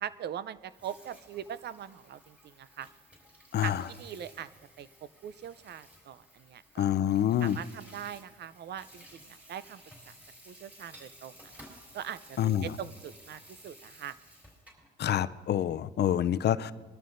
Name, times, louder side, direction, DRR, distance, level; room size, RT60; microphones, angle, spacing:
voice 1, 0.0-2.9 3.6-4.5 4.8-4.9 5.2-6.9 7.4-10.1 10.5-11.5 11.9-14.2, right 9 dB, 60° right, 16 dB, 0.5 m, -41 dB
Water tap faucet / Sink (filling or washing), 0.6-14.9, equal, 5° right, 3.9 m, -55 dB
voice 2, 6.8-7.6 12.4-12.7 15.0-16.7, left 10 dB, 55° left, 14 dB, 0.5 m, -27 dB
21.0 x 13.0 x 2.6 m, 1.4 s
cardioid pair, 90°, 20 cm